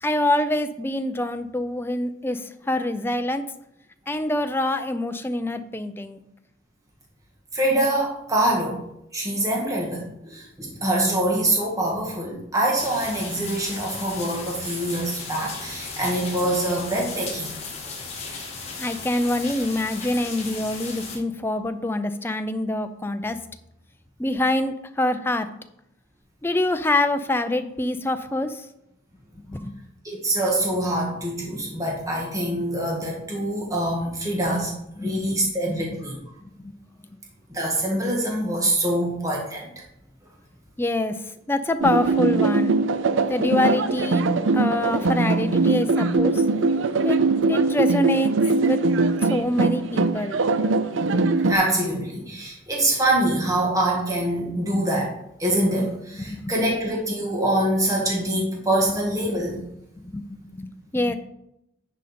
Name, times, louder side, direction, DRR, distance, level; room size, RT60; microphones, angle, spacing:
voice 1, 0.0-3.5 4.1-6.2 18.8-23.4 24.2-25.5 26.4-28.7 29.5-29.8 35.0-35.8 36.4-36.8 40.8-41.2 41.5-42.7 43.3-44.2 44.5-46.5 47.0-47.2 47.5-48.3 48.6-48.8 49.2-50.4 56.2-56.5 60.0-61.2, left 1 dB, 10° left, 8 dB, 0.5 m, -25 dB
voice 2, 7.5-8.8 9.1-17.5 30.0-34.7 35.0-36.2 37.5-39.7 51.4-55.1 55.4-59.6, right 1 dB, 15° right, -2 dB, 1.6 m, -24 dB
sound 1, 12.8-21.2, left 4 dB, 35° left, 2.1 m, -36 dB
sound 2, 41.8-51.5, right 3 dB, 80° right, 0.5 m, -21 dB
10.0 x 5.1 x 4.3 m, 0.81 s
head